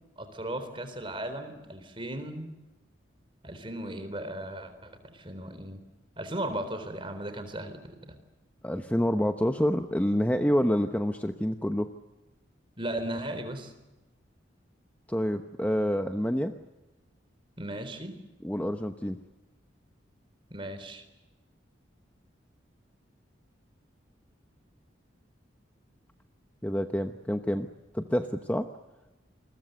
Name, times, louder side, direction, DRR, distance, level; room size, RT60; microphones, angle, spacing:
voice 1, 0.2-2.5 3.4-5.8 6.2-7.8 12.8-13.7 17.6-18.2 20.5-21.0, right 1 dB, 25° right, 9 dB, 3.9 m, -36 dB
voice 2, 8.6-11.9 15.1-16.5 18.4-19.2 26.6-27.7 27.9-28.7, equal, 10° left, 6 dB, 0.9 m, -27 dB
28.5 x 21.5 x 8.0 m, 1.1 s
head